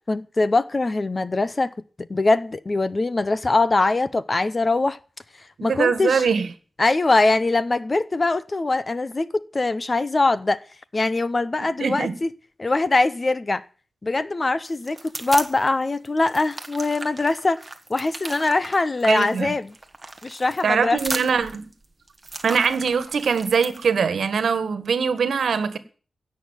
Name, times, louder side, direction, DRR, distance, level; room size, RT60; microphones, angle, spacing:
voice 1, 0.1-1.7 2.1-5.0 5.6-6.2 6.8-10.6 10.9-12.3 12.6-13.6 14.0-17.6 17.9-19.7 20.2-21.0, left 2 dB, 25° left, 0.6 m, -22 dB
voice 2, 5.6-6.5 11.8-12.2 19.1-19.5 20.6-21.7 22.4-25.8, right 6 dB, 70° right, 1.7 m, -22 dB
sound 1, 14.6-15.7 16.0-23.9, right 2 dB, 15° right, 1.5 m, -36 dB
16.5 x 6.6 x 9.1 m
wide cardioid pair, 165°, 0 cm